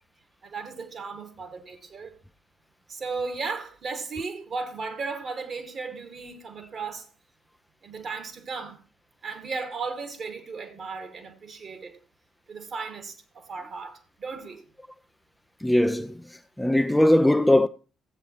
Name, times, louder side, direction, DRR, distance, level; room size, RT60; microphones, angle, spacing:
voice 1, 0.4-2.1 2.9-7.1 7.8-8.8 9.2-12.0 12.5-14.6, right 4 dB, 45° right, 2.2 m, -35 dB
voice 2, 15.6-16.2 16.6-17.7, left 1 dB, 5° left, 0.5 m, -20 dB
15.0 x 8.2 x 3.1 m
hypercardioid pair, 50°, 0 cm